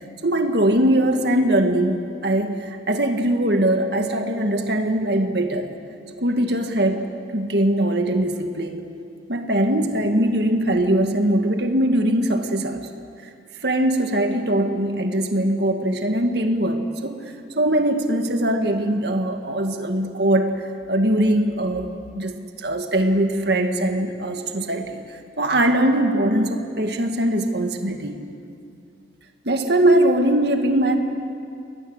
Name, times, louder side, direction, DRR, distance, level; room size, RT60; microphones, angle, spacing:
voice 1, 0.2-5.7 6.2-7.0 7.3-8.8 9.3-12.8 13.6-17.2 17.6-28.2 29.4-31.0, right 1 dB, 55° right, 5 dB, 2.0 m, -21 dB
29.5 x 22.0 x 8.1 m, 2.5 s
head